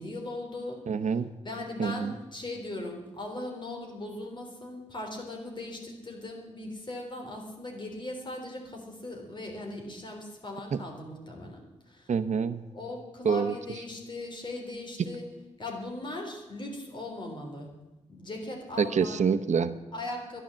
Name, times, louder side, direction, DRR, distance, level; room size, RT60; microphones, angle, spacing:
voice 1, 0.0-0.8 1.4-11.6 11.9-12.1 12.7-15.3 15.6-17.7 18.1-19.2 19.9-20.4, left 2 dB, 40° left, 2 dB, 3.6 m, -39 dB
voice 2, 0.9-1.3 1.8-2.1 12.1-12.6 13.2-13.5 18.8-19.7, right 6 dB, 75° right, 9 dB, 0.8 m, -26 dB
13.0 x 11.0 x 7.5 m, 1.1 s
wide cardioid pair, 130°, 12 cm